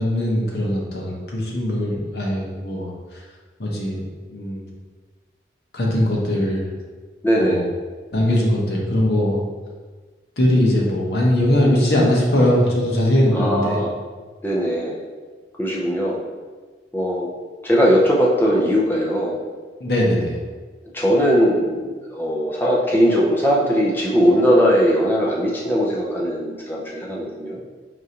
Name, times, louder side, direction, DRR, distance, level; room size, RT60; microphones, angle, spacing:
voice 1, 0.0-2.9 3.6-4.0 4.3-4.6 5.7-6.7 7.3-7.6 8.1-9.4 10.4-13.8 19.8-20.4, left 1 dB, 65° left, -3 dB, 0.8 m, -20 dB
voice 2, 7.2-7.6 13.3-13.9 14.4-15.0 15.6-16.2 16.9-17.3 17.6-19.4 20.9-27.6, equal, 10° left, -4 dB, 0.5 m, -19 dB
4.7 x 2.5 x 2.8 m, 1.4 s
head